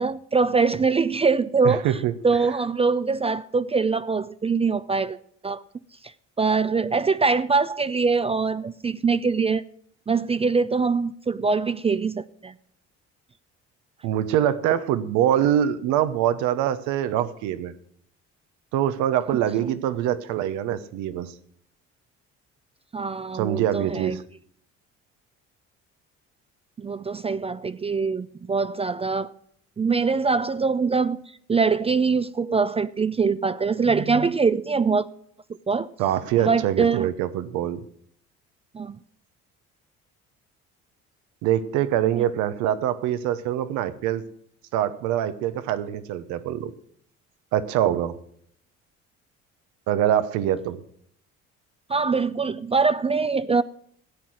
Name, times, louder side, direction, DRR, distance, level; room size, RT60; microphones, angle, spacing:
voice 1, 0.0-5.2 5.4-5.6 6.0-9.6 10.1-12.5 19.3-19.4 22.9-24.2 26.8-29.3 29.8-35.1 35.7-35.9 36.4-37.1 38.7-39.0 42.2-42.3 51.9-53.6, right 4 dB, 20° right, 0.4 m, -23 dB
voice 2, 1.6-2.1 14.0-17.7 18.7-21.3 23.3-24.2 36.0-37.8 41.4-44.2 44.7-46.7 47.5-48.2 49.9-50.8, right 11 dB, 90° right, 0.9 m, -24 dB
13.0 x 8.5 x 6.3 m
supercardioid pair, 85°, 29 cm